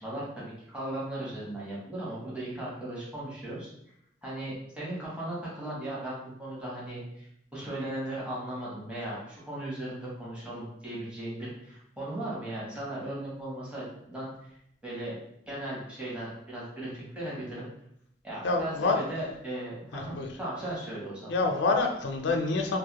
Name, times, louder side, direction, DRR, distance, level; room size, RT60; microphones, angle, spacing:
voice 1, 0.0-3.7 4.2-14.5 14.8-15.1 15.5-17.7 18.2-21.4, right 1 dB, 5° right, -8 dB, 0.8 m, -37 dB
voice 2, 18.4-19.0 19.9-20.3 21.3-22.8, left 3 dB, 80° left, 3 dB, 0.4 m, -27 dB
2.3 x 2.0 x 2.8 m, 0.74 s
head